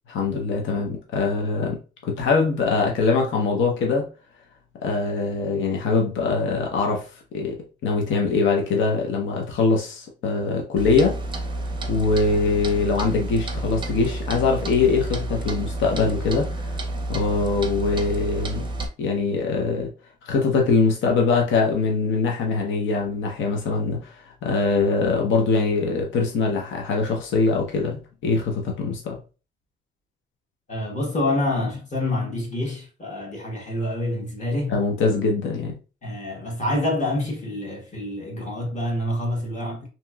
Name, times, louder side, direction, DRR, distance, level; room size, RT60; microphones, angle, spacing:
voice 1, 0.1-4.1 4.8-7.0 7.3-7.6 7.8-11.2 11.9-16.7 17.1-18.6 19.0-19.9 20.3-24.1 24.4-29.2 34.7-35.8, left 4 dB, 75° left, 0.7 m, -22 dB
Clock, 10.8-18.9, right 2 dB, 25° right, 0.6 m, -30 dB
voice 2, 30.7-34.8 36.0-39.9, left 1 dB, 35° left, 1.3 m, -27 dB
2.8 x 2.8 x 2.3 m
cardioid pair, 90°, 20 cm